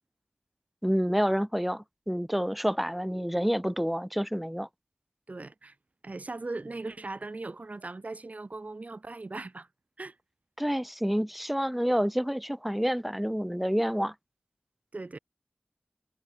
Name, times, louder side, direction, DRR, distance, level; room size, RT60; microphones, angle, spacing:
voice 1, 0.8-4.7 10.6-14.1, equal, 5° right, 0.4 m, -28 dB
voice 2, 5.3-5.7 6.0-9.7 10.0-10.2 14.9-15.2, right 3 dB, 50° right, 1.7 m, -39 dB
wide cardioid pair, 75°, 3 cm